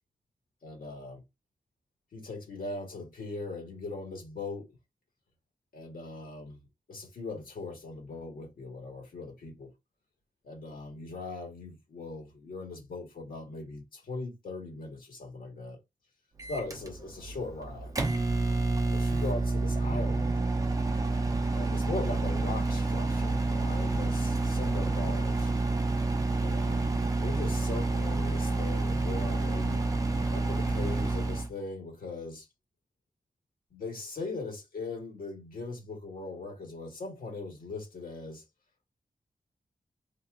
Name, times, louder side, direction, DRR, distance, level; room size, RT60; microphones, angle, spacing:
voice 1, 0.6-1.2 2.1-4.7 5.7-6.6 6.9-9.7 10.4-15.8 16.5-17.9 18.9-20.4 21.5-25.5 26.4-29.8 30.3-32.5 33.7-38.4, left 3 dB, 85° left, 1.7 m, -40 dB
Microwave oven, 16.4-31.5, right 2 dB, 25° right, 0.6 m, -28 dB
3.0 x 2.5 x 3.6 m
wide cardioid pair, 150°, 14 cm